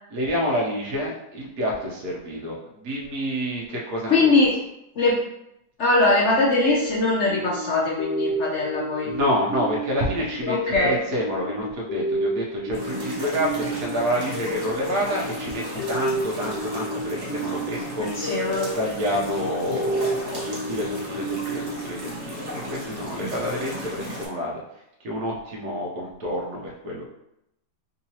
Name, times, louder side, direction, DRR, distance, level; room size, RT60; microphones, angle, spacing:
voice 1, 0.1-4.4 9.0-18.1 18.7-24.6 25.0-27.1, equal, 65° right, -3 dB, 1.1 m, -28 dB
voice 2, 4.1-4.5 5.0-5.2 5.8-9.1 10.5-11.0 18.0-18.7, left 2 dB, 75° left, -4 dB, 0.6 m, -21 dB
sound 1, 6.5-22.9, right 1 dB, 45° left, 1.4 m, -31 dB
sound 2, 12.7-24.3, equal, 35° right, 0.8 m, -35 dB
3.8 x 2.8 x 2.8 m, 0.84 s
omnidirectional pair, 1.9 m